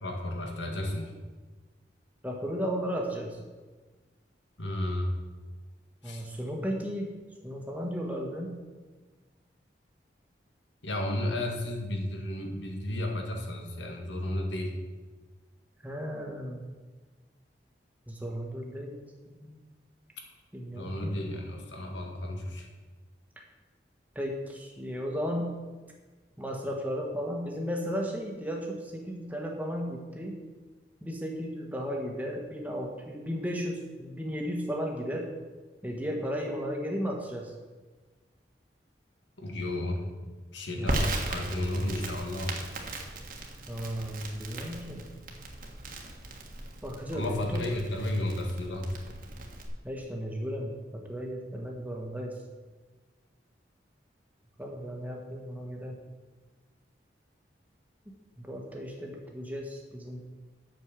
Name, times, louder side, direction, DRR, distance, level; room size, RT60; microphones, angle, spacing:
voice 1, 0.0-1.1 4.6-5.1 6.0-6.2 10.8-14.8 20.7-22.7 39.4-40.0 40.5-42.6 47.1-49.0, left 1 dB, 85° left, 2 dB, 1.9 m, -33 dB
voice 2, 2.2-3.4 6.0-7.1 7.4-8.6 15.8-16.6 18.1-19.6 20.5-21.4 24.1-25.5 26.4-30.4 31.0-35.3 35.8-37.5 40.8-41.0 43.7-45.0 46.8-47.6 49.8-52.3 54.6-56.0 58.4-60.2, equal, 10° right, 0 dB, 1.4 m, -35 dB
Crackle, 40.9-49.7, right 2 dB, 50° right, 1.5 m, -37 dB
8.1 x 6.6 x 7.5 m, 1.3 s
head